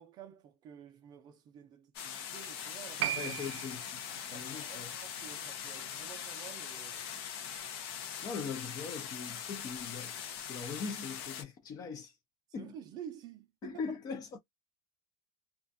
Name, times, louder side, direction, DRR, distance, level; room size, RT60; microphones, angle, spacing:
voice 1, 0.0-3.3 4.3-7.1 12.6-13.9, right 9 dB, 30° right, 0.5 m, -50 dB
sound 1, 1.9-11.4, left 8 dB, 75° left, 0.6 m, -42 dB
Piano, 3.0-10.0 10.2-10.3, right 12 dB, 90° right, 0.4 m, -43 dB
voice 2, 3.2-4.0 4.3-4.9 8.2-10.1 10.4-12.1 12.5-12.7 13.6-14.4, left 5 dB, 30° left, 0.5 m, -41 dB
2.4 x 2.2 x 2.5 m
supercardioid pair, 160°, 13 cm